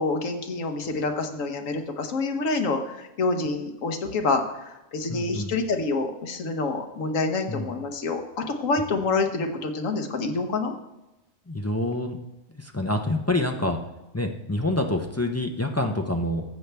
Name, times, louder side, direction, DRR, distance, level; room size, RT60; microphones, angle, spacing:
voice 1, 0.0-10.7, left 3 dB, 80° left, 5 dB, 1.4 m, -27 dB
voice 2, 5.1-5.5 7.5-7.7 11.5-12.2 12.6-13.8 14.1-16.4, left 1 dB, 20° left, 3 dB, 0.4 m, -27 dB
14.0 x 7.9 x 3.4 m, 0.98 s
omnidirectional pair, 1.3 m